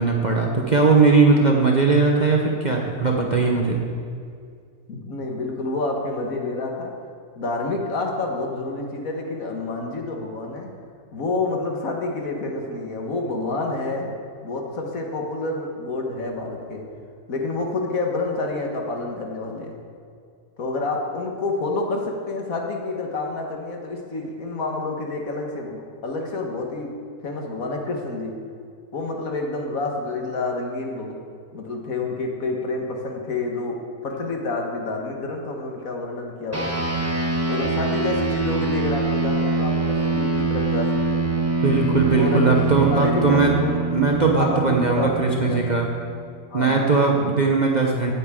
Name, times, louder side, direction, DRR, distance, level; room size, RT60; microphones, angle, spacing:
voice 1, 0.0-3.8 41.6-43.5 43.9-45.9 46.5-48.1, right 4 dB, 35° right, 0 dB, 0.9 m, -19 dB
voice 2, 4.9-7.0 7.4-10.7 11.1-14.2 14.4-16.8 17.3-19.7 20.6-26.9 27.2-28.4 28.9-31.2 31.5-36.7 37.5-41.2 42.2-42.6 42.9-43.7 44.4-45.8 46.5-46.8, left 2 dB, 60° left, 1 dB, 1.7 m, -28 dB
sound 1, 36.5-46.3, right 2 dB, 10° right, 1.0 m, -24 dB
16.5 x 9.0 x 3.7 m, 2.3 s
omnidirectional pair, 1.6 m